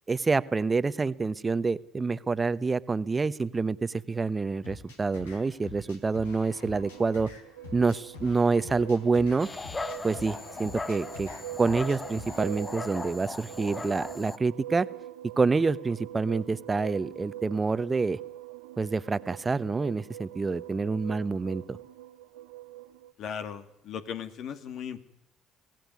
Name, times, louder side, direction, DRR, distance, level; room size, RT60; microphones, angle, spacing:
voice 1, 0.1-7.3 7.7-9.5 10.0-11.3 11.6-14.9 15.4-18.2 18.8-21.8, right 4 dB, 25° right, 16 dB, 1.0 m, -27 dB
sound 1, 4.6-12.6, left 4 dB, 90° left, 3.6 m, -47 dB
sound 2, 6.7-23.1, right 14 dB, 85° right, 0.8 m, -44 dB
Dog, 9.4-14.4, left 3 dB, 25° left, 1.0 m, -38 dB
voice 2, 23.2-25.1, left 8 dB, 60° left, 10 dB, 2.2 m, -37 dB
24.5 x 16.5 x 9.5 m, 0.79 s
hypercardioid pair, 60°, 0 cm